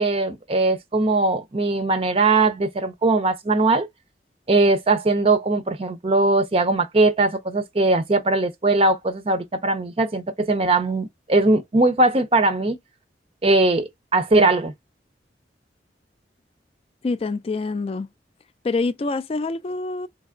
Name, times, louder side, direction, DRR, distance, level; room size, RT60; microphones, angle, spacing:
voice 1, 0.0-3.9 4.5-12.8 13.4-14.7, right 2 dB, 35° right, 0.5 m, -20 dB
voice 2, 17.0-18.1 18.6-20.1, left 3 dB, 30° left, 0.3 m, -26 dB
3.4 x 3.0 x 3.7 m
head